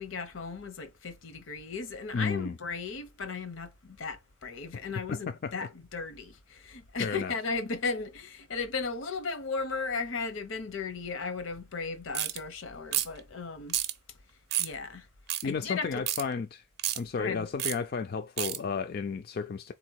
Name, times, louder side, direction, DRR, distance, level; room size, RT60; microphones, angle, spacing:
voice 1, 0.0-13.8 14.6-15.1 15.4-16.1 17.2-17.5, left 4 dB, 75° left, 0.8 m, -36 dB
voice 2, 2.1-2.6 5.1-5.5 7.0-7.3 15.4-16.6 17.0-19.7, left 5 dB, 50° left, 0.3 m, -33 dB
sound 1, 12.1-12.4 12.9-13.2 13.7-13.9 14.5-14.7 15.3-15.4 16.1-16.2 16.8-17.0 17.6-17.8 18.4-18.6, right 12 dB, 50° right, 0.5 m, -29 dB
4.1 x 2.8 x 4.5 m
head